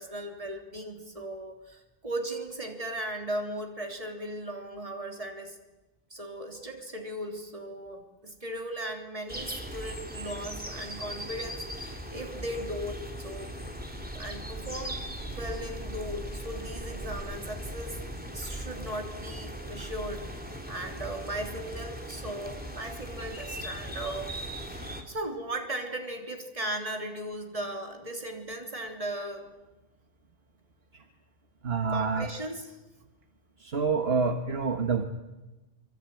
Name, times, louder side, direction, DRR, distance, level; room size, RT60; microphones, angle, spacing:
voice 1, 0.0-5.6 6.1-13.5 14.1-18.0 18.3-24.4 24.7-29.5 31.9-32.7, right 1 dB, 35° right, 3 dB, 3.6 m, -37 dB
sound 1, 9.3-25.0, right 1 dB, 10° right, 3.2 m, -39 dB
voice 2, 31.6-32.3 33.6-35.0, right 5 dB, 70° right, 6 dB, 1.8 m, -27 dB
25.5 x 25.0 x 9.2 m, 1.1 s
omnidirectional pair, 1.1 m